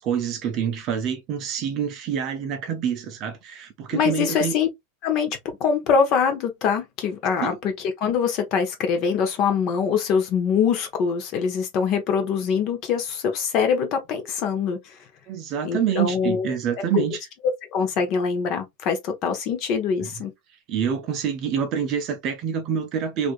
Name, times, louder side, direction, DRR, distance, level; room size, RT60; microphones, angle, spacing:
voice 1, 0.0-4.5 7.4-7.6 15.3-17.2 20.0-20.1 20.7-23.3, right 8 dB, 30° right, 0.5 m, -26 dB
voice 2, 3.9-4.7 5.0-7.7 8.0-14.9 15.6-16.5 16.9-17.0 17.7-20.3, left 6 dB, 35° left, 0.8 m, -23 dB
3.1 x 2.5 x 2.5 m
supercardioid pair, 175°, 0 cm